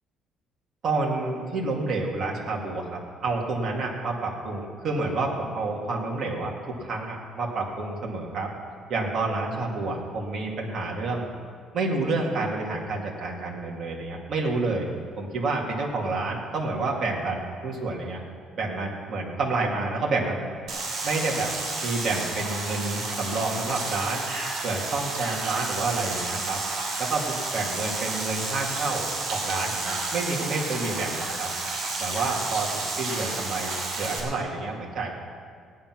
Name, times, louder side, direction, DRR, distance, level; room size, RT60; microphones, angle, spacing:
voice 1, 0.8-8.5 8.9-11.3 11.7-14.9 15.2-18.2 18.6-20.5 21.0-21.5 21.8-24.3 24.6-26.6 27.0-31.5 32.0-35.1, right 3 dB, 35° right, -2 dB, 2.2 m, -29 dB
sound 1, 20.7-34.2, right 3 dB, 55° right, 4.1 m, -31 dB
17.5 x 9.5 x 6.0 m, 2.1 s
cardioid pair, 170°, 0 cm